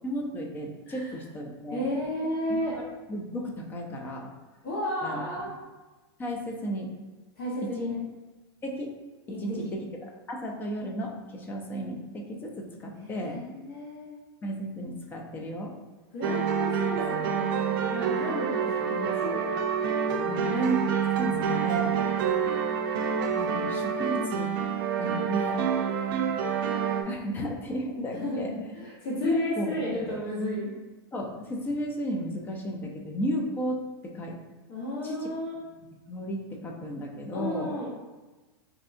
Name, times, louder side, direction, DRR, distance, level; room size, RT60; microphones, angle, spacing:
voice 1, 0.0-1.8 2.5-4.3 5.0-5.5 6.2-6.9 7.8-7.9 8.6-8.9 9.4-13.4 14.4-15.7 20.5-20.8 21.2-21.9 23.3-24.5 25.0-25.6 27.1-28.5 29.2-30.2 31.1-34.4 35.0-35.3 36.1-37.7, equal, 15° left, 1 dB, 0.5 m, -33 dB
voice 2, 1.7-2.7 4.6-5.5 7.4-8.0 9.3-9.6 12.9-14.2 16.1-19.4 20.2-20.6 28.1-30.7 34.7-35.6 37.3-37.9, left 1 dB, 55° left, -6 dB, 1.1 m, -33 dB
sound 1, 16.2-27.0, right 7 dB, 55° right, 0.4 m, -27 dB
4.4 x 2.7 x 2.5 m, 1.2 s
supercardioid pair, 145°, 13 cm